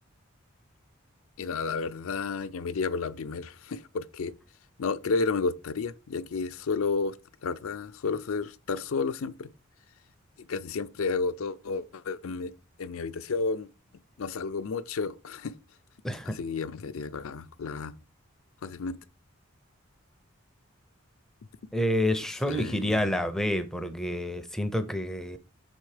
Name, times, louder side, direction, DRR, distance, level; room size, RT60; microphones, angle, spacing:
voice 1, 1.4-4.3 4.8-7.2 7.4-9.5 10.4-12.5 12.8-13.7 14.2-15.6 16.4-17.9 18.6-19.0 22.5-23.1, left 4 dB, 75° left, 0.5 m, -31 dB
voice 2, 16.0-16.4 21.7-25.4, left 1 dB, ahead, 0.5 m, -28 dB
6.3 x 4.3 x 4.9 m
head